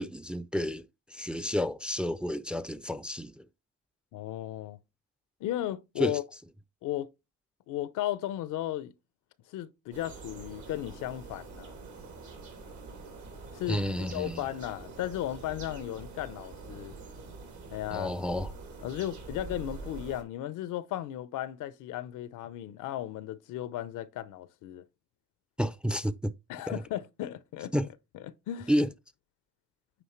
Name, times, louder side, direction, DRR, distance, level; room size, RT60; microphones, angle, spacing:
voice 1, 0.0-3.5 6.0-6.2 13.7-14.4 17.9-18.5 25.6-26.3 26.7-26.8 27.7-27.9 28.7-28.9, equal, 5° right, 0.4 m, -31 dB
voice 2, 4.1-4.8 5.4-6.2 6.8-7.1 7.7-8.9 9.5-11.7 13.5-13.8 14.1-17.0 17.7-18.1 18.8-24.8 26.5-27.7 28.1-28.7, left 13 dB, 90° left, 0.7 m, -35 dB
sound 1, 9.9-20.2, right 3 dB, 70° right, 2.5 m, -45 dB
9.1 x 3.7 x 3.1 m
cardioid pair, 90°, 30 cm